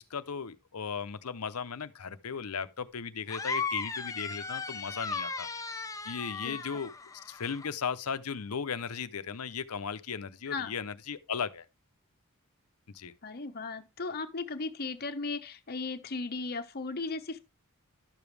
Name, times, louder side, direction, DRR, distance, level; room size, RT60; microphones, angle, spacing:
voice 1, 0.0-5.5 5.8-6.9 7.2-11.7 12.9-13.1, left 6 dB, 80° left, 0.7 m, -36 dB
sound 1, 3.3-7.7, left 4 dB, 15° left, 0.5 m, -36 dB
voice 2, 13.2-17.4, left 3 dB, 45° left, 0.9 m, -36 dB
11.5 x 7.0 x 3.3 m
head